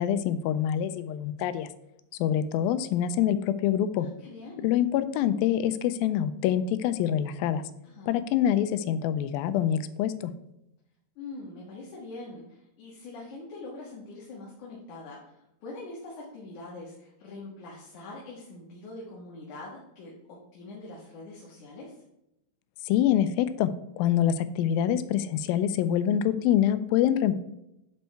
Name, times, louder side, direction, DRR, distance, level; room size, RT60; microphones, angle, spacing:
voice 1, 0.0-1.7 2.2-4.1 4.6-7.6 8.1-10.3 22.9-23.7 24.0-27.3, left 10 dB, 90° left, 12 dB, 2.4 m, -25 dB
voice 2, 4.0-4.7 7.8-8.2 11.2-22.0, left 2 dB, 60° left, -4 dB, 2.8 m, -43 dB
9.7 x 4.6 x 4.5 m, 0.86 s
omnidirectional pair, 4.1 m